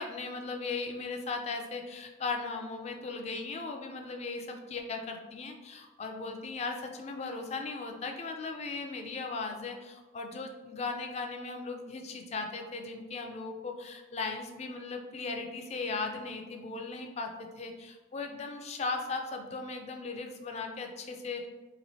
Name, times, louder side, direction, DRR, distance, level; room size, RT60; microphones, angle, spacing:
voice 1, 0.0-21.5, left 3 dB, 35° left, 4 dB, 0.3 m, -37 dB
3.6 x 3.0 x 2.7 m, 1.2 s
head